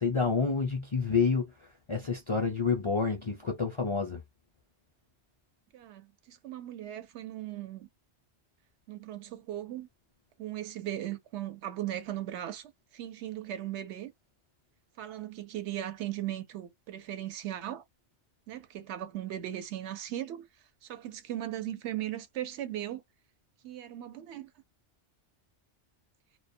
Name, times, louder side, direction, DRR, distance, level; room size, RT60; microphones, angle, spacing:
voice 1, 0.0-1.5 1.9-4.2, left 5 dB, 40° left, 0.4 m, -28 dB
voice 2, 5.7-7.9 8.9-9.9 10.4-14.1 15.0-17.8 18.5-20.5 20.8-23.0 23.6-24.5, right 12 dB, 75° right, 0.9 m, -38 dB
2.3 x 2.1 x 2.6 m
omnidirectional pair, 1.2 m